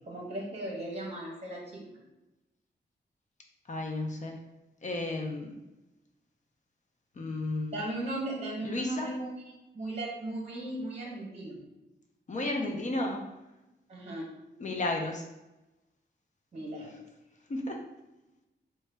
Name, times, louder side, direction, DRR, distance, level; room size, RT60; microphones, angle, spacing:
voice 1, 0.1-1.8 7.7-9.4 9.7-11.6 13.9-14.3 16.5-17.0, right 1 dB, 35° right, -3 dB, 0.9 m, -37 dB
voice 2, 3.7-4.4 4.8-5.6 7.2-7.8 8.6-9.1 12.3-13.3 14.6-15.2 17.5-17.8, left 2 dB, 40° left, 1 dB, 0.5 m, -33 dB
3.8 x 2.2 x 3.3 m, 0.99 s
wide cardioid pair, 165°, 19 cm